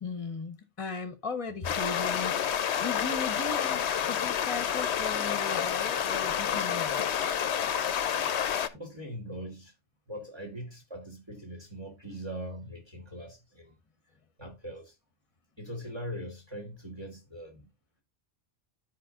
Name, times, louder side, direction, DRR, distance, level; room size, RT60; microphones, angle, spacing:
voice 1, 0.0-7.4, left 4 dB, 30° left, 1.0 m, -38 dB
sound 1, 1.6-8.7, left 8 dB, 70° left, 1.0 m, -29 dB
voice 2, 8.7-9.7 10.1-13.7 14.4-14.9 15.6-17.7, equal, 20° right, 1.6 m, -41 dB
13.0 x 4.7 x 2.5 m
omnidirectional pair, 1.2 m